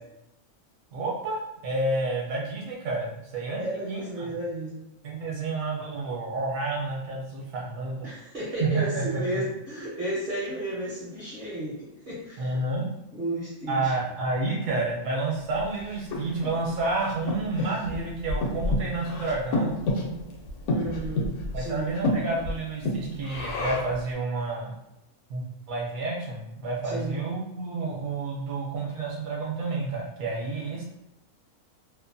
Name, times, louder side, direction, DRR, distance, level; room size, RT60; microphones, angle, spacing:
voice 1, 0.9-4.3 5.0-8.1 8.6-9.4 12.4-12.9 13.7-19.8 21.5-24.7 25.3-30.8, right 3 dB, 70° right, -2 dB, 1.0 m, -30 dB
voice 2, 3.6-4.8 8.0-12.6 13.1-13.9 20.7-21.3 21.5-21.9 26.8-27.2, right 1 dB, 50° right, -7 dB, 0.6 m, -33 dB
Breathing, 15.5-24.0, left 1 dB, 80° left, 1.1 m, -30 dB
2.7 x 2.1 x 2.5 m, 0.87 s
omnidirectional pair, 1.5 m